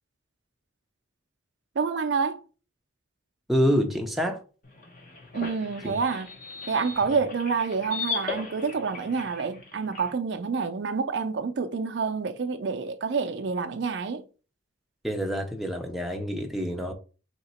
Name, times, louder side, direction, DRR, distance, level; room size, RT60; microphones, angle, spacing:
voice 1, 1.8-2.4 5.3-6.3 6.7-14.2, right 5 dB, 70° right, 0.4 m, -28 dB
voice 2, 3.5-4.4 5.8-6.0 15.0-16.9, equal, ahead, 0.5 m, -27 dB
sound 1, 4.6-10.1, left 5 dB, 45° left, 0.9 m, -38 dB
3.6 x 2.9 x 4.3 m
head